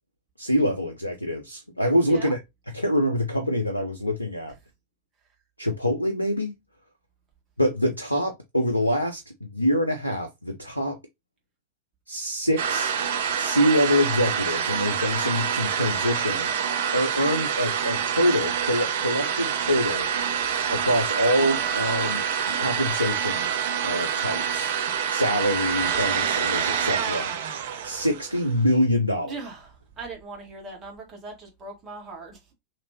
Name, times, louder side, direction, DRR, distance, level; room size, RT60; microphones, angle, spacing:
voice 1, 0.4-2.4 2.7-4.5 5.6-6.5 7.6-11.0 12.1-12.9 13.4-16.5 16.9-20.0 20.7-22.2 22.6-23.5 23.8-24.7 25.1-27.3 27.8-29.3, equal, 85° left, 0.5 m, -25 dB
sound 1, 12.6-28.6, right 8 dB, 55° right, 0.6 m, -27 dB
voice 2, 16.3-16.7 26.1-26.5 29.2-32.4, right 3 dB, 20° right, 1.5 m, -40 dB
3.0 x 2.9 x 2.7 m
figure-of-eight pair, 90°, 0 cm